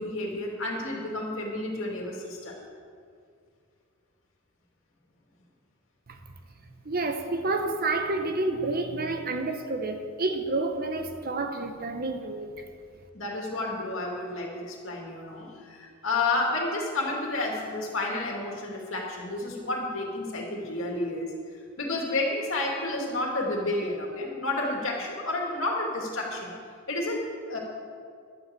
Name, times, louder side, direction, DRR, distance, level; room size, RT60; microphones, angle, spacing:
voice 1, 0.0-2.6 13.1-21.3 21.8-26.5 26.9-27.2 27.5-27.6, left 2 dB, 60° left, 2.4 m, -30 dB
voice 2, 6.8-12.6, right 2 dB, 40° right, 0.9 m, -29 dB
11.5 x 8.0 x 7.7 m
head